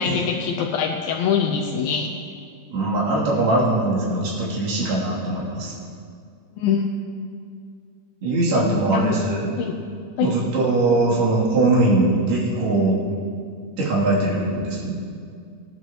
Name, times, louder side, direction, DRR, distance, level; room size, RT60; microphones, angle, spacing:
voice 1, 0.0-2.1 6.6-6.8 8.9-9.2 9.6-9.7 10.2-10.3, left 7 dB, 80° left, 1 dB, 2.5 m, -23 dB
voice 2, 2.7-5.7 8.2-9.5 10.2-12.9 13.8-14.9, right 2 dB, 90° right, -6 dB, 4.9 m, -21 dB
19.5 x 12.0 x 3.0 m, 2.2 s
omnidirectional pair, 4.3 m